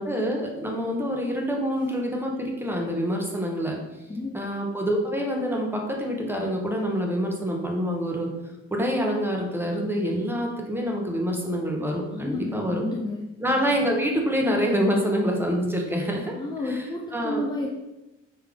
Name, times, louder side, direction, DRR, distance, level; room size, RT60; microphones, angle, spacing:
voice 1, 0.0-3.8 4.3-8.3 8.7-12.8 13.4-16.3 16.6-16.9 17.1-17.4, equal, 5° right, 0 dB, 0.8 m, -26 dB
voice 2, 12.1-13.2 16.4-17.7, left 2 dB, 15° left, -1 dB, 0.4 m, -31 dB
3.6 x 3.2 x 3.4 m, 1.0 s
cardioid pair, 90°, 30 cm